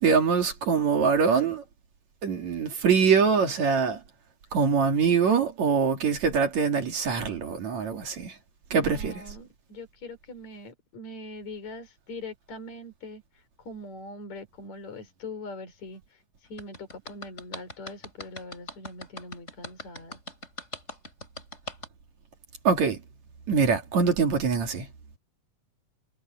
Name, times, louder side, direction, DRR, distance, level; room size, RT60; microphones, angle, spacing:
voice 1, 0.0-1.6 2.2-4.0 4.5-8.4 8.7-9.1 22.7-23.0 23.5-24.9, right 6 dB, 70° right, 3.8 m, -23 dB
voice 2, 8.7-20.2, left 2 dB, 70° left, 5.6 m, -42 dB
sound 1, 16.6-21.9, left 2 dB, 20° left, 6.8 m, -40 dB
omnidirectional pair, 3.3 m